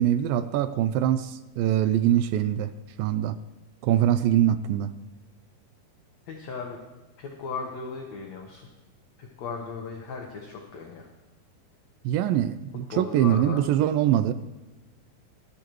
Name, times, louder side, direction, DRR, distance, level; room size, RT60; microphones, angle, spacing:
voice 1, 0.0-2.7 3.0-3.4 3.8-4.9 12.1-14.3, right 11 dB, 80° right, 2.1 m, -23 dB
voice 2, 6.3-6.8 7.2-8.7 9.4-11.1 12.9-13.6, left 4 dB, 60° left, 2.0 m, -36 dB
20.0 x 13.0 x 3.1 m
omnidirectional pair, 4.5 m